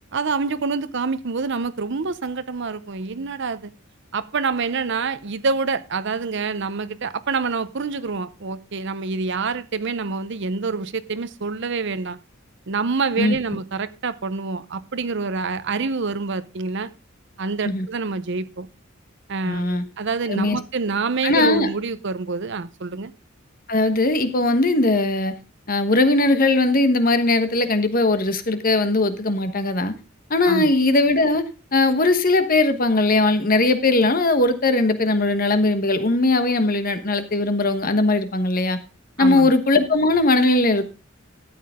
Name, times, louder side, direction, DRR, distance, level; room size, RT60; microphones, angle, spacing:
voice 1, 0.1-3.7 4.1-12.2 12.7-16.9 17.4-18.7 19.3-23.1 30.5-30.7 39.2-39.5, right 4 dB, 60° right, 0.7 m, -26 dB
voice 2, 19.5-19.8 20.3-20.6 21.2-21.7 23.7-25.3 25.7-29.9 30.3-31.4 31.7-38.8 39.2-40.8, left 2 dB, 45° left, 1.2 m, -19 dB
13.0 x 8.6 x 3.6 m
head